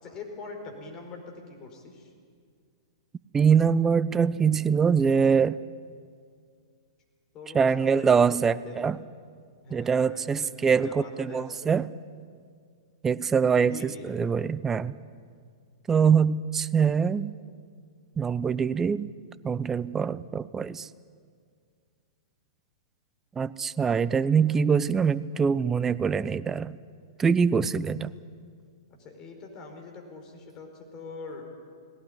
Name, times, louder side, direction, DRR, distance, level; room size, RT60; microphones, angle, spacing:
voice 1, 0.0-2.1 7.3-8.9 9.6-11.8 13.7-14.1 29.0-31.5, left 3 dB, 30° left, 3 dB, 4.8 m, -43 dB
voice 2, 3.3-5.6 7.5-9.0 9.7-11.9 13.0-14.9 15.9-17.3 18.2-19.1 19.4-20.9 23.4-26.8 27.2-28.1, right 6 dB, 15° right, 17 dB, 0.6 m, -24 dB
19.0 x 17.5 x 9.9 m, 2.1 s
figure-of-eight pair, 110°, 2 cm